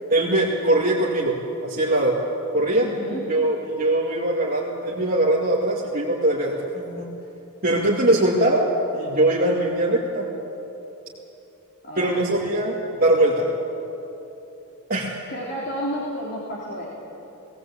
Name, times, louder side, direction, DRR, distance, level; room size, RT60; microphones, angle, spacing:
voice 1, 0.1-1.3 1.6-2.2 2.5-2.9 3.3-7.1 7.6-8.7 8.9-10.3 12.0-13.5 14.9-15.1, right 1 dB, 40° right, -5 dB, 2.4 m, -21 dB
voice 2, 2.8-3.2 11.8-12.2 15.3-16.9, equal, 50° left, -4 dB, 3.3 m, -31 dB
19.0 x 18.5 x 8.5 m, 2.9 s
head